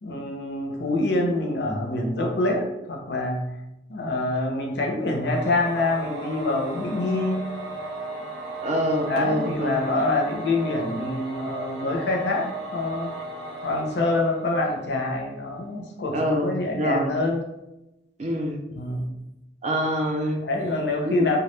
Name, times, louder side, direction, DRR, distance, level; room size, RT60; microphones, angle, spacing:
voice 1, 0.0-3.5 3.9-7.4 8.3-8.4 9.1-12.5 12.7-13.1 13.6-17.4 18.7-19.1 20.4-21.4, left 2 dB, 65° left, 1 dB, 0.5 m, -26 dB
Singing / Musical instrument, 5.2-15.2, right 2 dB, 80° right, 0.6 m, -36 dB
voice 2, 8.6-9.8 16.1-17.1 18.2-18.6 19.6-20.4 21.0-21.3, equal, 35° right, 2 dB, 0.3 m, -25 dB
2.2 x 2.1 x 3.0 m, 0.92 s
head